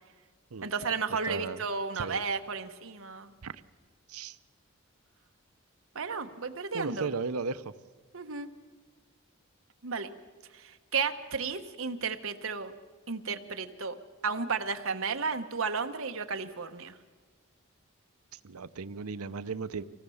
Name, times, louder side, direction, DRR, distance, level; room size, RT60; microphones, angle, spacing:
voice 1, 0.6-3.3 5.9-7.1 8.1-8.5 9.8-10.1 10.6-12.7 13.1-13.9 14.2-16.9, right 5 dB, 70° right, 7 dB, 1.2 m, -33 dB
voice 2, 1.3-1.6 1.9-2.2 3.4-3.6 4.1-4.4 6.7-7.7 18.4-19.8, right 4 dB, 85° right, 13 dB, 0.7 m, -35 dB
24.5 x 18.0 x 7.1 m, 1.5 s
head